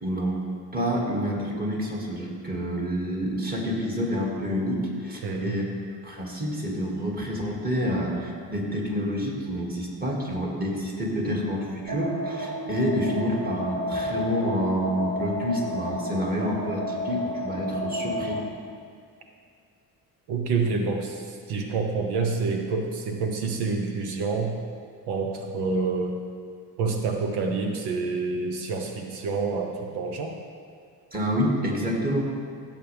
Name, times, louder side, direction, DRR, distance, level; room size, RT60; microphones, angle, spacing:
voice 1, 0.0-0.4 0.7-5.7 6.0-18.4 31.1-32.2, equal, 25° right, -2 dB, 2.2 m, -28 dB
voice 2, 5.2-5.6 20.3-24.6 25.1-26.2 26.8-30.4, right 4 dB, 85° right, 3 dB, 1.1 m, -28 dB
sound 1, 11.9-18.4, equal, 45° right, 1.3 m, -32 dB
16.0 x 7.6 x 3.5 m, 2.3 s
cardioid pair, 110°, 39 cm